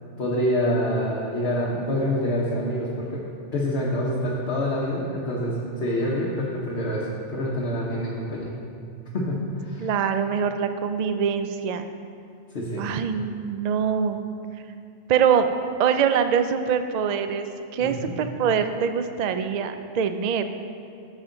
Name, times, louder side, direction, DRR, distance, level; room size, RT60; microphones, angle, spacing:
voice 1, 0.2-3.2 3.5-8.5 9.1-9.9 12.5-12.9 17.8-18.1, equal, 55° left, -4 dB, 1.3 m, -26 dB
voice 2, 9.8-11.9 12.8-14.2 15.1-15.5 15.8-17.5 17.7-20.5, right 7 dB, 75° right, 8 dB, 0.3 m, -24 dB
11.5 x 7.2 x 3.9 m, 2.5 s
omnidirectional pair, 1.3 m